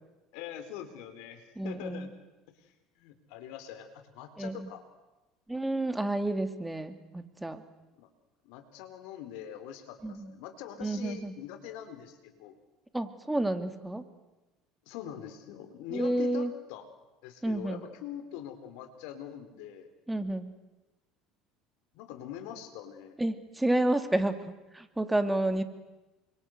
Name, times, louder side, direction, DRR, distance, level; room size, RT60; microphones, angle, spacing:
voice 1, 0.3-2.1 2.6-2.7 3.0-4.8 8.0-8.1 8.4-12.6 14.9-16.8 17.2-19.9 21.9-23.2, left 10 dB, 65° left, 9 dB, 4.0 m, -43 dB
voice 2, 1.6-2.1 4.4-4.7 5.5-7.6 10.0-10.3 10.8-11.3 12.9-14.0 15.9-16.5 17.4-17.8 20.1-20.5 23.2-25.6, right 1 dB, 10° right, 10 dB, 2.7 m, -30 dB
29.0 x 25.5 x 8.1 m, 1.1 s
hypercardioid pair, 70°, 0 cm